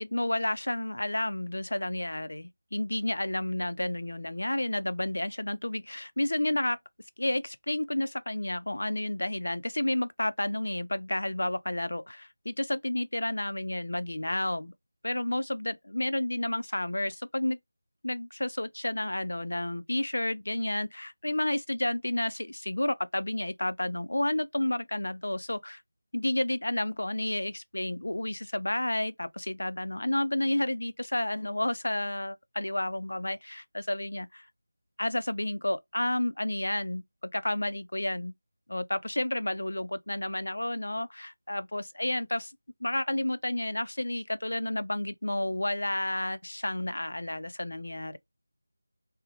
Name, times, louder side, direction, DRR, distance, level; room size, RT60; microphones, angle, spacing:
voice 1, 0.0-6.8 7.2-14.7 15.0-17.6 18.0-25.8 26.1-34.5 35.0-38.3 38.7-42.5 42.8-48.2, left 1 dB, 90° left, 0.3 m, -31 dB
2.7 x 2.0 x 2.6 m
figure-of-eight pair, 175°, 0 cm